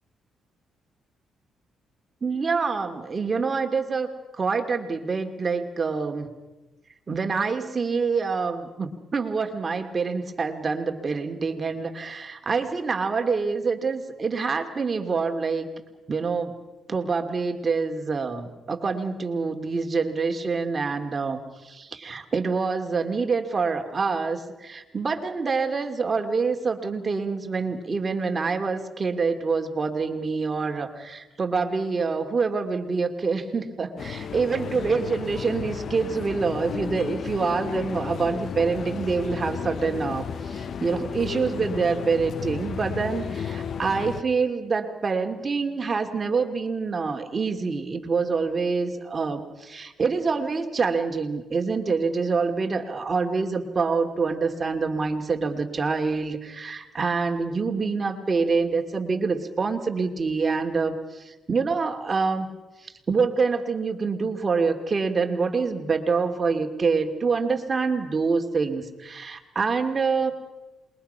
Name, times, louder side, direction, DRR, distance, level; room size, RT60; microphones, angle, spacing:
voice 1, 2.2-4.1 4.4-6.3 7.1-15.7 16.1-16.5 16.9-62.5 62.8-70.3, right 4 dB, 35° right, 5 dB, 2.5 m, -26 dB
sound 1, 34.0-44.2, left 7 dB, 55° left, 0.8 m, -33 dB
27.5 x 22.0 x 5.7 m, 1.1 s
cardioid pair, 90°, 0 cm